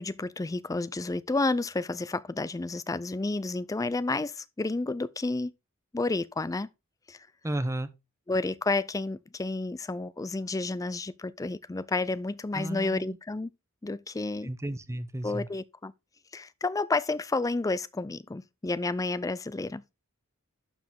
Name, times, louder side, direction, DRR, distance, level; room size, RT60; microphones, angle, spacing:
voice 1, 0.0-5.5 5.9-6.7 7.1-7.3 8.3-13.5 13.8-14.5 15.2-15.9 16.3-19.8, left 3 dB, 15° left, 0.4 m, -30 dB
voice 2, 7.4-7.9 12.5-13.2 14.4-15.5, right 1 dB, 15° right, 0.7 m, -33 dB
11.5 x 5.0 x 3.6 m
head